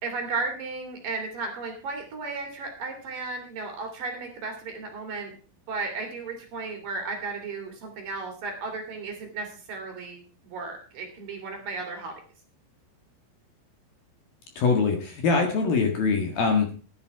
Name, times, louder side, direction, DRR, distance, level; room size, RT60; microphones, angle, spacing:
voice 1, 0.0-5.3 5.7-12.1, right 4 dB, 50° right, 3 dB, 3.8 m, -34 dB
voice 2, 14.6-16.7, left 4 dB, 60° left, 4 dB, 3.0 m, -23 dB
15.0 x 10.5 x 4.7 m, 0.38 s
omnidirectional pair, 5.6 m